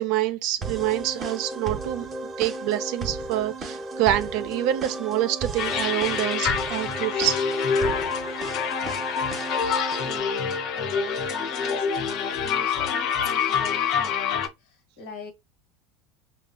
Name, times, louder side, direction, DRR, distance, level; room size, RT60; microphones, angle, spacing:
voice 1, 0.0-2.1 2.4-7.4, right 13 dB, 55° right, 0.3 m, -26 dB
sound 1, 0.6-10.2, right 3 dB, 30° right, 0.8 m, -34 dB
sound 2, 5.6-14.5, left 6 dB, 50° left, 0.6 m, -26 dB
voice 2, 10.0-15.3, left 4 dB, 65° left, 1.3 m, -41 dB
5.6 x 2.3 x 2.2 m
figure-of-eight pair, 75°, 0 cm